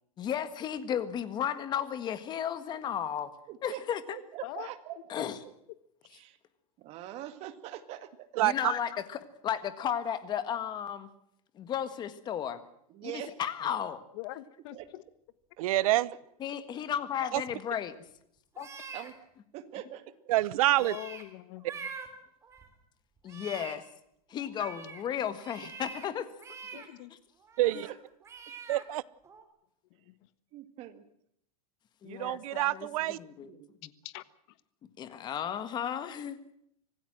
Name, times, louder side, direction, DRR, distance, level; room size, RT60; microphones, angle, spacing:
voice 1, 0.2-3.3 3.6-4.2 5.1-5.4 8.4-11.1 11.5-12.6 13.0-14.0 16.4-17.9 18.6-18.7 23.2-23.8 24.3-26.3 27.1-27.2 32.0-33.5 33.8-33.9 35.0-36.4, left 9 dB, 20° left, 12 dB, 1.6 m, -34 dB
voice 2, 3.5-3.8 4.1-5.0 6.1-6.4 6.8-8.3 12.9-13.4 13.6-13.7 14.7-14.9 15.6-15.7 18.9-20.1 26.7-26.8 27.6-28.0 30.5-31.0 33.0-33.2 33.4-33.7, right 12 dB, 35° right, 10 dB, 2.0 m, -43 dB
voice 3, 8.4-8.7 15.6-16.1 17.3-17.4 20.3-21.0 27.6-27.9 28.7-29.0 32.1-33.2, right 16 dB, 65° right, 21 dB, 0.9 m, -27 dB
voice 4, 14.1-15.0 20.8-21.9 26.7-27.1 30.1-30.2 34.0-34.2, left 17 dB, 50° left, 15 dB, 1.4 m, -43 dB
sound 1, 18.5-19.1 20.7-21.2 21.6-22.1 22.4-22.7 23.2-23.7 24.3-25.0 25.4-26.1 26.4-26.9 27.4-27.9 28.2-28.8 29.2-29.4, right 5 dB, 15° right, 3.2 m, -45 dB
25.5 x 17.5 x 7.6 m, 0.73 s
supercardioid pair, 165°, 20 cm